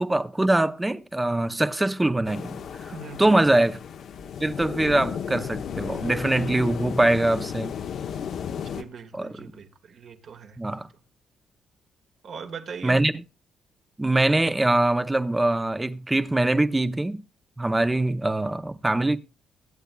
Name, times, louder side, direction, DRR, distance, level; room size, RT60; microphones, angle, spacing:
voice 1, 0.0-2.9 3.2-3.8 4.4-7.7 9.1-9.5 10.6-10.9 12.8-13.2 14.0-17.2 17.6-19.2, right 2 dB, 15° right, 0.7 m, -23 dB
sound 1, 2.3-8.8, left 8 dB, 65° left, 0.8 m, -34 dB
voice 2, 2.9-3.7 8.7-10.8 12.2-13.0, right 5 dB, 60° right, 1.7 m, -40 dB
23.5 x 8.1 x 2.3 m
cardioid pair, 90°, 0 cm